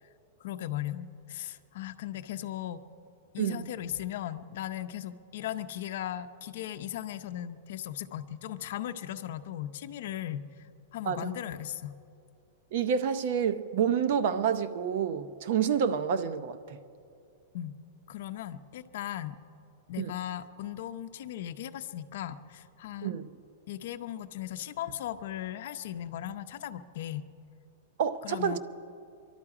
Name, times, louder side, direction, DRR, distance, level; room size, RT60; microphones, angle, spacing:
voice 1, 0.4-2.8 3.3-10.4 10.9-11.9 17.5-17.7 18.1-19.4 19.9-23.1 23.7-27.2 28.2-28.6, left 12 dB, 55° left, 0.7 m, -37 dB
voice 2, 12.7-16.8 20.0-20.1 23.0-23.3 28.0-28.6, right 7 dB, 50° right, 0.7 m, -28 dB
24.0 x 12.0 x 4.9 m
supercardioid pair, 170°, 0 cm